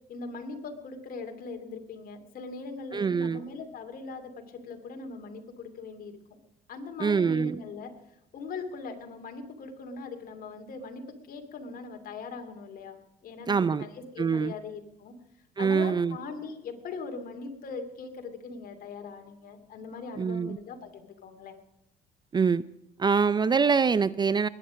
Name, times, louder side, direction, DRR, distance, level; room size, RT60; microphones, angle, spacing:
voice 1, 0.1-6.4 6.7-7.9 8.3-13.0 13.2-15.1 15.6-21.6, left 4 dB, 60° left, 6 dB, 2.7 m, -40 dB
voice 2, 2.9-3.4 7.0-7.6 13.5-13.8 14.2-14.5 15.6-16.2 20.2-20.6 22.3-22.6 23.0-24.5, right 5 dB, 25° right, 18 dB, 0.5 m, -24 dB
21.0 x 10.0 x 5.1 m, 0.86 s
cardioid pair, 110°, 17 cm